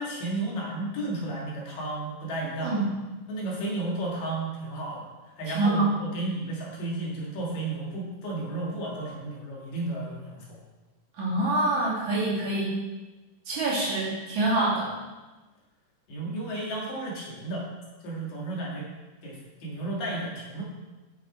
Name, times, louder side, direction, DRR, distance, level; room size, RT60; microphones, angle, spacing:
voice 1, 0.0-2.8 3.3-5.1 5.4-10.6 16.1-17.7 18.0-18.9 19.2-20.6, right 2 dB, 70° left, -3 dB, 3.5 m, -33 dB
voice 2, 5.5-5.9 11.2-12.7 13.5-14.9, right 2 dB, 60° right, -7 dB, 3.7 m, -25 dB
8.1 x 8.0 x 4.4 m, 1.2 s
omnidirectional pair, 4.1 m